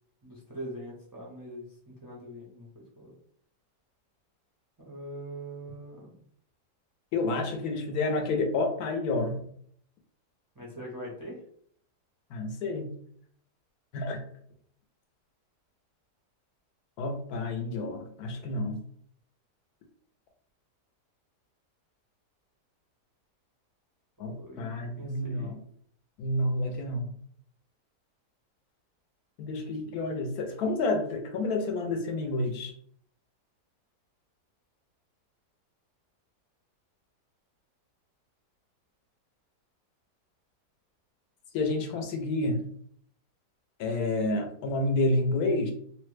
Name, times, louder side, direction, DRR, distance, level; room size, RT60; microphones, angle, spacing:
voice 1, 0.2-3.1 4.8-6.2 10.5-11.4 24.4-25.6, right 1 dB, 35° right, -5 dB, 0.3 m, -42 dB
voice 2, 7.1-9.4 12.3-12.9 13.9-14.2 17.0-18.8 24.2-25.6 26.2-27.1 29.4-32.7 41.5-42.6 43.8-45.7, left 2 dB, 75° left, 4 dB, 1.0 m, -29 dB
3.0 x 2.1 x 3.1 m, 0.63 s
omnidirectional pair, 1.8 m